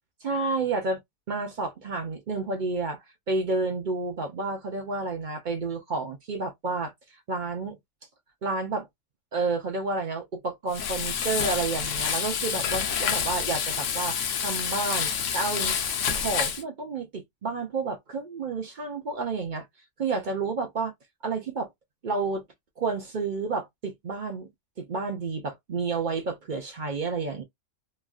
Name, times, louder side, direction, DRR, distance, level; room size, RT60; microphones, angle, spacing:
voice 1, 0.2-1.0 1.3-3.0 3.3-7.8 8.4-8.9 9.3-15.8 16.1-19.7 20.0-20.9 21.2-21.7 22.0-22.4 22.8-24.5 24.8-27.4, right 3 dB, 50° right, 0.6 m, -30 dB
Frying (food), 10.7-16.6, left 7 dB, 90° left, 1.0 m, -28 dB
3.0 x 2.5 x 2.3 m
omnidirectional pair, 1.3 m